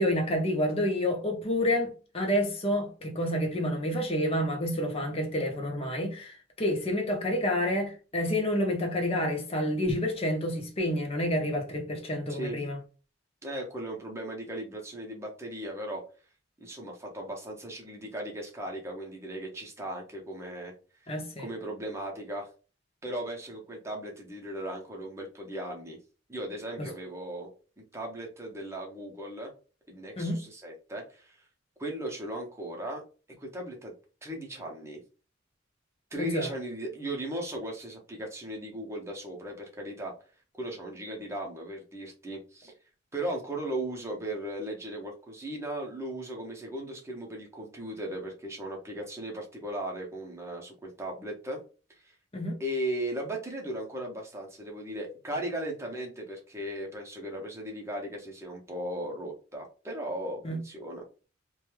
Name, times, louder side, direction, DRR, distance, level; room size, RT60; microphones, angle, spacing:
voice 1, 0.0-12.8 21.1-21.5 26.8-26.9 30.2-30.4 36.2-36.5 52.3-52.5 60.4-60.6, left 1 dB, 30° left, 0.7 m, -29 dB
voice 2, 13.4-16.0 16.6-20.7 21.0-22.5 23.0-26.0 26.3-27.5 27.8-29.5 29.9-31.4 31.8-33.0 33.4-33.9 34.2-35.0 36.1-40.1 40.6-42.7 43.1-51.6 51.9-52.1 52.6-61.0, right 1 dB, 15° right, 0.7 m, -37 dB
2.6 x 2.2 x 3.1 m
head